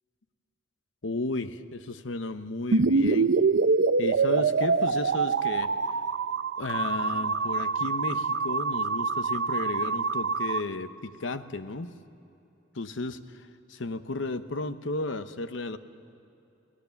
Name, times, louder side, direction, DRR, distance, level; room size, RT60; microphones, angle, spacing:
voice 1, 1.0-3.3 4.0-5.7 6.6-11.9 12.7-15.8, left 2 dB, 80° left, 11 dB, 0.9 m, -34 dB
sound 1, 2.7-10.6, right 4 dB, 70° right, 0.6 m, -25 dB
24.0 x 18.0 x 7.1 m, 2.8 s
head